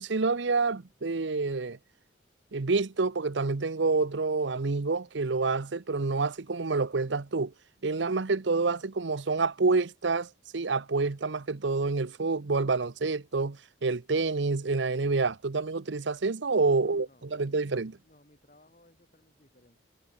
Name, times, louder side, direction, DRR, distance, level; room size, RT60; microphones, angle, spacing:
voice 1, 0.0-1.8 2.5-7.5 7.8-18.0, right 3 dB, 80° right, 0.8 m, -28 dB
voice 2, 16.5-17.3 18.0-19.8, left 1 dB, 45° left, 6.8 m, -60 dB
head